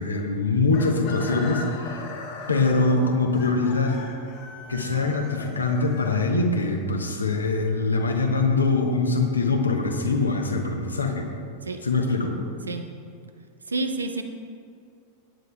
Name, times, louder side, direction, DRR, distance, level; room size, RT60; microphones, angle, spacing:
voice 1, 0.0-2.0 2.5-4.0 4.7-11.3 11.8-12.4, left 3 dB, 80° left, 2 dB, 1.1 m, -23 dB
Chicken rooster, 0.7-6.7, left 3 dB, 45° left, 1.2 m, -39 dB
voice 2, 13.7-14.2, right 3 dB, 75° right, 7 dB, 0.7 m, -28 dB
17.0 x 9.3 x 2.3 m, 2.2 s
figure-of-eight pair, 90°, 0 cm